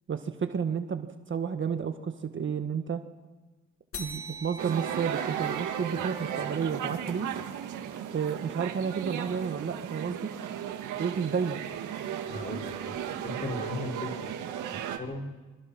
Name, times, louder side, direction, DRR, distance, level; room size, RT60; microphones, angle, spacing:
voice 1, 0.1-3.0 4.0-7.3 8.1-10.3 11.0-11.6, right 6 dB, 40° right, 7 dB, 1.6 m, -31 dB
sound 1, 3.9-8.8, right 1 dB, 45° left, 3.3 m, -45 dB
sound 2, 4.6-15.0, right 9 dB, 85° right, 2.1 m, -35 dB
voice 2, 12.3-14.4 14.7-15.3, left 2 dB, 30° left, 4 dB, 5.5 m, -37 dB
28.0 x 25.0 x 6.1 m, 1.2 s
cardioid pair, 90°, 30 cm